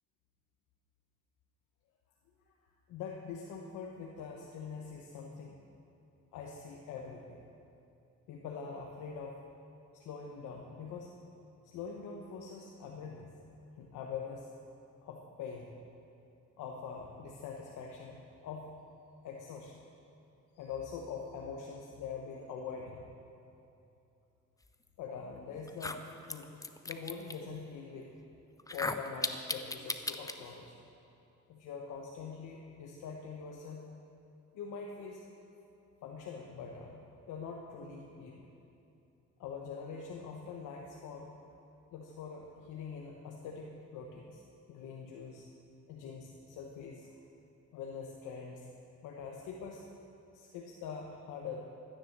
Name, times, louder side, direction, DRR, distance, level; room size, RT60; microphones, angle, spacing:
voice 1, 2.9-5.6 6.3-7.4 8.3-9.4 9.9-11.1 11.6-13.3 13.8-14.5 15.0-15.7 16.6-18.7 19.2-19.8 20.5-23.0 25.0-26.5 26.8-28.1 28.7-30.8 31.5-33.9 34.5-35.2 36.0-38.4 39.4-41.3 41.9-44.4 44.7-45.4 45.9-47.2 47.7-48.7 49.0-49.8 50.3-51.6, left 5 dB, 90° left, 0 dB, 1.1 m, -44 dB
sound 1, 25.1-25.2 25.7-27.4 28.6-30.4, left 2 dB, 10° left, 0.7 m, -37 dB
13.5 x 10.0 x 6.6 m, 2.7 s
cardioid pair, 90°, 30 cm